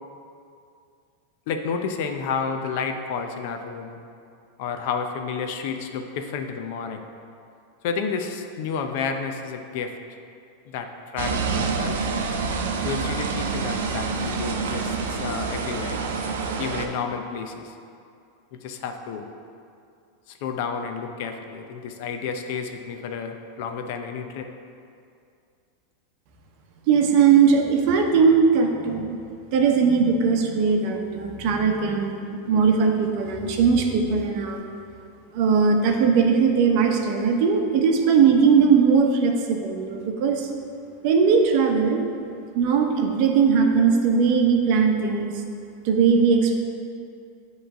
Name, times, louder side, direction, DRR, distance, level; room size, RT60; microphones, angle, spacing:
voice 1, 1.5-4.0 4.6-7.0 7.8-10.0 10.7-12.1 12.8-16.0 16.6-17.8 18.5-19.3 20.3-24.5, left 6 dB, 60° left, 6 dB, 0.6 m, -31 dB
sound 1, 11.2-16.9, right 4 dB, 85° right, 0.6 m, -27 dB
voice 2, 26.9-29.2 29.5-34.6 35.3-40.5 41.0-42.0 42.5-45.3 45.8-46.6, right 5 dB, 55° right, 3 dB, 0.8 m, -19 dB
7.8 x 3.2 x 5.0 m, 2.4 s
supercardioid pair, 130°, 0 cm